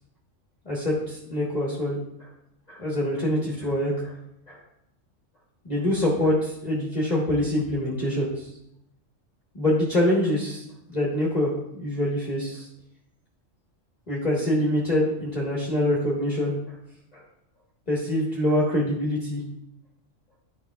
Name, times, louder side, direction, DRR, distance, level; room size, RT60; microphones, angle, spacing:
voice 1, 0.6-2.0 2.7-4.1 4.5-4.6 5.6-8.5 9.5-12.7 14.1-16.5 17.1-17.2 17.9-19.4, left 1 dB, 35° left, -6 dB, 1.4 m, -25 dB
11.0 x 5.1 x 2.3 m, 0.79 s
omnidirectional pair, 1.3 m